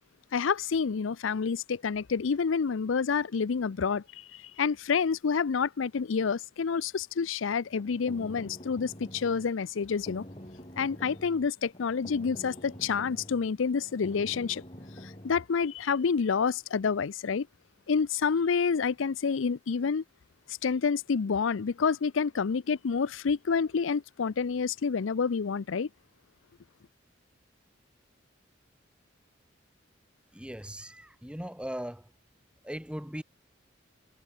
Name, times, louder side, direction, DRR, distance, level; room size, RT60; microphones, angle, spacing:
voice 1, 0.3-10.2 10.8-14.6 15.0-17.5 17.9-20.0 20.6-25.9, left 5 dB, 85° left, 0.5 m, -28 dB
sound 1, 7.6-15.5, equal, 30° left, 5.6 m, -47 dB
voice 2, 30.3-32.1 32.6-33.2, equal, 5° right, 1.4 m, -39 dB
head